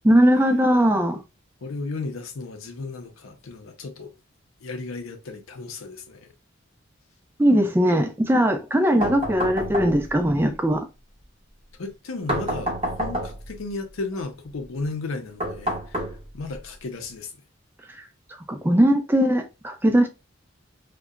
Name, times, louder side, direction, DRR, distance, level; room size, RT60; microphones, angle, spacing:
voice 1, 0.0-1.2 7.4-10.8 18.5-20.1, equal, 10° right, 0.3 m, -19 dB
voice 2, 1.6-4.1 4.6-6.3 11.8-16.0 16.3-17.3, left 3 dB, 80° left, 0.6 m, -34 dB
sound 1, 9.0-10.3 12.3-13.6 15.4-16.6, equal, 30° right, 0.7 m, -28 dB
2.8 x 2.2 x 2.3 m
head